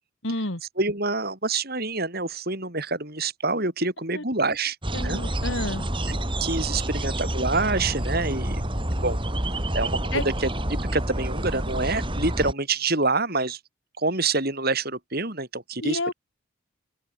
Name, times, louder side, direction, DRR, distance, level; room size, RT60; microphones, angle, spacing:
voice 1, 0.2-0.6 4.1-4.2 4.9-5.8 10.1-10.3 15.8-16.1, left 2 dB, 65° left, 4.3 m, -29 dB
voice 2, 0.8-4.8 5.0-5.2 6.1-8.6 9.0-9.2 9.7-13.6 14.0-16.1, right 3 dB, 45° right, 6.1 m, -27 dB
sound 1, 4.8-12.5, right 1 dB, 25° right, 5.8 m, -28 dB
open air
head